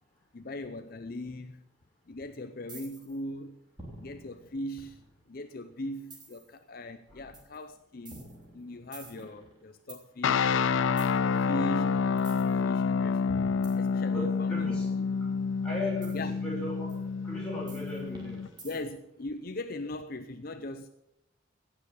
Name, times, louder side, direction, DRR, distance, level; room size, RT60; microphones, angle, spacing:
voice 1, 0.3-1.6 2.1-3.6 4.0-5.0 5.3-8.2 8.5-10.5 11.2-13.5 13.8-15.0 16.1-16.3 18.6-20.9, left 1 dB, 50° left, 0.6 m, -39 dB
sound 1, 2.7-3.2 3.8-5.3 6.1-6.5 7.3-7.6 8.0-10.0 11.0-11.2 12.2-12.5 13.3-14.4 16.0-16.2 16.9-17.0 17.7-19.0, right 2 dB, 25° right, 3.5 m, -48 dB
sound 2, 10.2-18.5, left 5 dB, 85° left, 0.4 m, -28 dB
voice 2, 14.1-14.9 15.2-15.3 15.6-18.4, left 1 dB, 5° left, 6.2 m, -37 dB
17.0 x 6.9 x 7.1 m
head